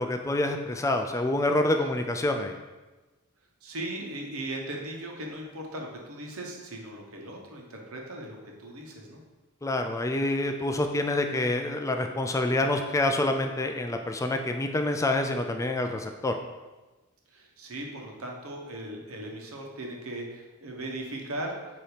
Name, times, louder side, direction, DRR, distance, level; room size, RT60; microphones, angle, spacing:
voice 1, 0.0-2.5 9.6-16.4, left 2 dB, 15° left, 5 dB, 0.3 m, -27 dB
voice 2, 3.6-9.2 17.3-21.6, right 1 dB, 80° right, 0 dB, 1.1 m, -38 dB
8.0 x 2.9 x 4.9 m, 1.2 s
head